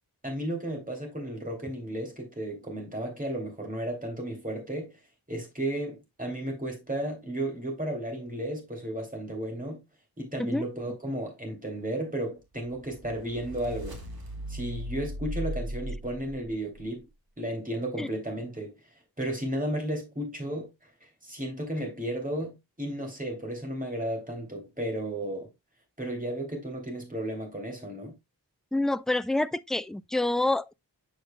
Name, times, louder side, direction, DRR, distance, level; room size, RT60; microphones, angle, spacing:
voice 1, 0.2-5.0 5.3-9.8 10.2-14.0 14.5-17.0 17.4-18.7 19.2-20.7 21.2-25.5 26.0-28.1, right 1 dB, 20° right, 3.0 m, -33 dB
sound 1, 12.7-16.9, equal, 65° right, 2.0 m, -38 dB
voice 2, 28.7-30.7, left 2 dB, ahead, 0.3 m, -27 dB
8.0 x 6.5 x 2.3 m
wide cardioid pair, 55°, 39 cm